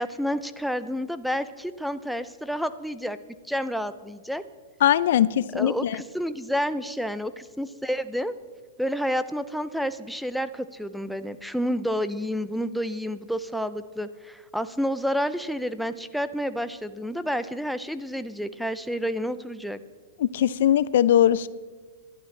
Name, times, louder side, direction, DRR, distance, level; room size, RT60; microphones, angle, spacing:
voice 1, 0.0-3.2 3.5-4.4 5.5-8.3 8.8-19.8, equal, ahead, 13 dB, 0.5 m, -29 dB
voice 2, 4.8-6.0 20.2-21.5, left 11 dB, 70° left, 18 dB, 0.4 m, -20 dB
27.5 x 11.5 x 3.3 m, 1.4 s
hypercardioid pair, 145°, 0 cm